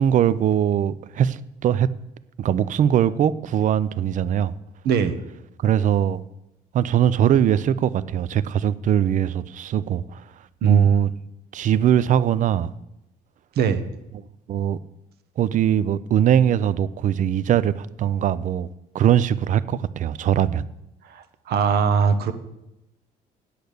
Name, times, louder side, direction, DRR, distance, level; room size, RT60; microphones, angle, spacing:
voice 1, 0.0-1.9 2.4-4.5 5.6-6.2 6.7-10.2 10.6-11.1 11.5-12.7 14.5-14.8 15.4-18.7 18.9-20.6, right 10 dB, 50° right, 16 dB, 0.5 m, -21 dB
voice 2, 10.6-10.9 13.6-13.8 21.5-22.3, right 6 dB, 70° right, 10 dB, 1.1 m, -20 dB
8.4 x 8.0 x 6.8 m, 0.90 s
cardioid pair, 110°, 17 cm